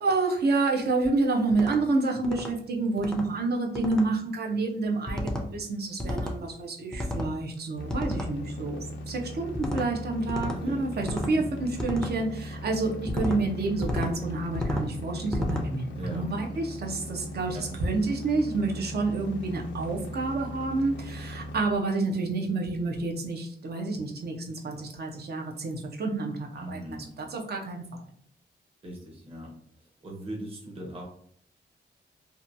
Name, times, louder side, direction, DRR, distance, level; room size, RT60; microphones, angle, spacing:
voice 1, 0.0-28.0, right 3 dB, 60° right, 1 dB, 0.6 m, -29 dB
sound 1, 1.5-1.8 2.2-2.5 3.0-3.3 3.7-4.0 5.1-5.5 6.0-6.4 6.9-7.3 7.9-8.3 9.5-9.9 10.3-10.6 11.0-11.3 11.8-12.1 13.1-13.4 13.8-14.1 14.5-14.9 15.3-15.7, left 1 dB, 5° left, 0.4 m, -31 dB
sound 2, 7.8-21.6, equal, 90° left, 0.5 m, -39 dB
voice 2, 10.4-10.8 11.2-11.5 16.0-16.3 17.5-17.7 26.6-27.1 28.8-31.0, right 1 dB, 30° right, -2 dB, 0.8 m, -40 dB
2.8 x 2.2 x 2.6 m, 0.64 s
wide cardioid pair, 125°, 19 cm